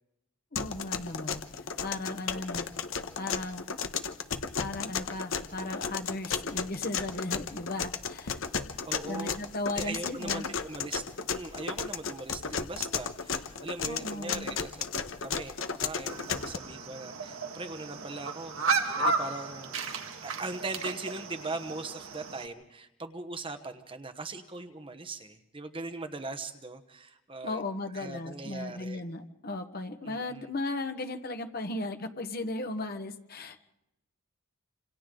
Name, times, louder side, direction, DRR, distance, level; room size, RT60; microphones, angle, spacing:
voice 1, 0.5-1.4 1.8-2.7 3.2-3.6 4.6-8.4 9.0-10.5 13.8-14.5 27.4-33.6, left 2 dB, 50° left, 6 dB, 1.3 m, -36 dB
sound 1, 0.6-16.6, left 6 dB, 75° left, 1.2 m, -34 dB
voice 2, 8.9-9.4 9.8-18.6 19.0-19.7 20.2-27.6 27.9-29.0 30.0-30.5, right 3 dB, 25° right, 8 dB, 1.1 m, -40 dB
sound 2, 16.1-22.5, right 4 dB, 75° right, 1.9 m, -34 dB
27.5 x 27.0 x 3.8 m, 0.89 s
head